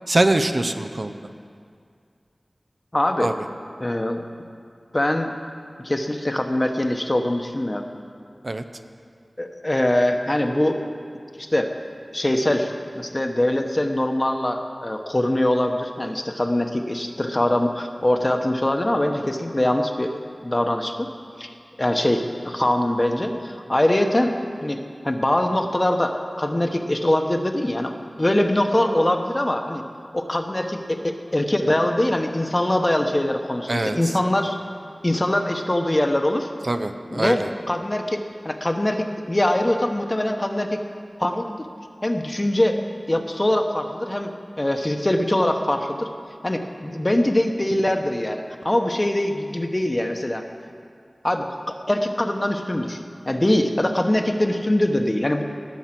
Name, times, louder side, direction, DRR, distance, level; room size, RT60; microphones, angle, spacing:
voice 1, 0.1-1.1 3.2-3.3 8.4-8.6 33.7-34.0 36.7-37.5, right 2 dB, 50° right, 7 dB, 0.6 m, -23 dB
voice 2, 2.9-3.3 3.8-4.2 4.9-5.3 5.8-7.9 9.4-10.8 11.4-11.7 12.1-20.1 20.4-21.1 21.4-21.5 21.8-24.8 25.0-29.8 30.1-34.6 35.0-36.5 37.1-40.8 41.2-41.7 42.0-42.8 43.1-46.1 46.4-50.4 51.2-55.4, left 1 dB, 30° left, 5 dB, 1.0 m, -23 dB
19.0 x 7.3 x 6.0 m, 2.2 s
wide cardioid pair, 60°, 0 cm